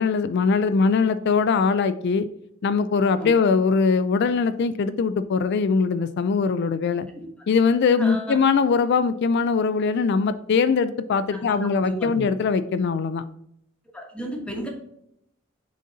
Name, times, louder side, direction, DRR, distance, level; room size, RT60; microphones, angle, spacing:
voice 1, 0.0-2.3 2.6-7.1 7.5-13.2, left 5 dB, 55° left, 12 dB, 0.3 m, -21 dB
voice 2, 8.0-8.4 11.3-12.3 13.9-14.7, equal, 5° left, 1 dB, 1.1 m, -33 dB
6.4 x 3.9 x 3.9 m, 0.75 s
head